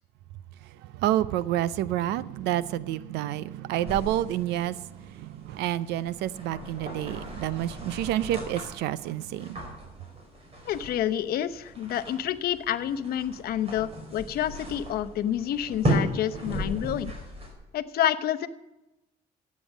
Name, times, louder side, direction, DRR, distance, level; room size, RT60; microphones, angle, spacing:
voice 1, 1.0-4.8 5.2-9.6, right 13 dB, 85° right, 0.6 m, -29 dB
sound 1, 3.9-17.5, right 1 dB, 35° right, 4.9 m, -36 dB
voice 2, 10.7-17.1 17.7-18.5, left 11 dB, 65° left, 0.8 m, -28 dB
14.0 x 8.5 x 7.3 m
cardioid pair, 110°, 17 cm